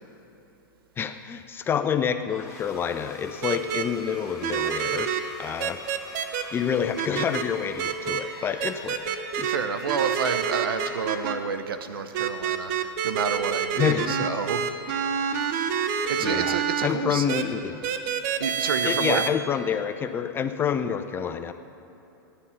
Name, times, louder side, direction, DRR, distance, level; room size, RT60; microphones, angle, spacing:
voice 1, 1.0-5.1 5.4-5.8 6.5-9.1 9.4-9.5 13.8-14.3 16.2-17.8 18.8-21.5, left 7 dB, 20° left, 9 dB, 0.5 m, -28 dB
sound 1, 2.3-11.8, left 1 dB, ahead, 2.9 m, -45 dB
sound 2, 3.4-3.8 4.4-5.2 5.6-6.4 7.0-7.4 7.8-8.2 8.6-9.6 9.9-11.3 12.1-16.9 17.3-17.4 17.8-19.3, right 8 dB, 50° right, 1.0 m, -27 dB
voice 2, 9.4-14.7 15.2-15.8 16.1-17.3 18.4-19.3, right 6 dB, 85° right, 10 dB, 0.8 m, -30 dB
15.5 x 9.9 x 5.6 m, 3.0 s
hypercardioid pair, 135°, 12 cm